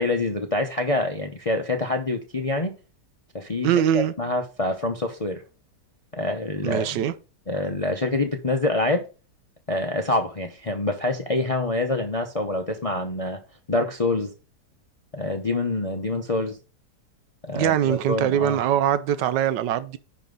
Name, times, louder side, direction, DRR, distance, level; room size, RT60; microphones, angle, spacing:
voice 1, 0.0-2.7 3.3-5.4 6.1-7.0 7.5-9.0 9.7-13.4 13.7-14.3 15.1-16.6 17.4-18.6, left 2 dB, 40° left, 0.5 m, -26 dB
voice 2, 3.6-4.1 6.6-7.1 17.5-20.0, right 10 dB, 80° right, 1.3 m, -22 dB
10.5 x 4.4 x 3.8 m
omnidirectional pair, 1.9 m